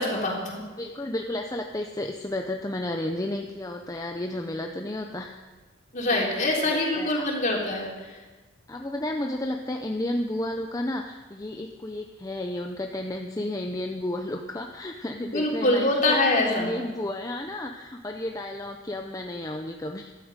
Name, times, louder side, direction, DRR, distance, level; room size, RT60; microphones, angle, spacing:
voice 1, 0.0-0.6 5.9-7.9 15.3-16.7, left 2 dB, 40° left, -2 dB, 3.5 m, -24 dB
voice 2, 0.8-5.4 6.1-7.2 8.7-20.1, left 1 dB, 15° left, 3 dB, 0.7 m, -32 dB
15.0 x 12.5 x 5.2 m, 1.3 s
head